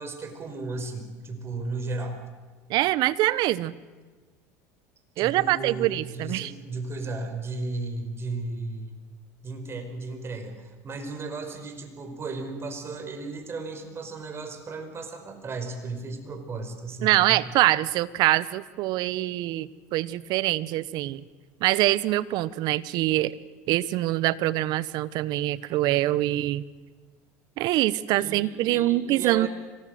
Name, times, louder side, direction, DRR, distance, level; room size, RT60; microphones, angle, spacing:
voice 1, 0.0-2.2 5.2-9.0 9.4-17.4 28.1-29.5, right 3 dB, 30° right, 6 dB, 5.0 m, -35 dB
voice 2, 2.7-3.7 5.2-6.5 17.0-21.2 21.6-23.3 23.7-26.6 27.6-29.5, right 16 dB, 60° right, 18 dB, 1.0 m, -24 dB
25.0 x 18.5 x 7.9 m, 1.4 s
supercardioid pair, 90°, 8 cm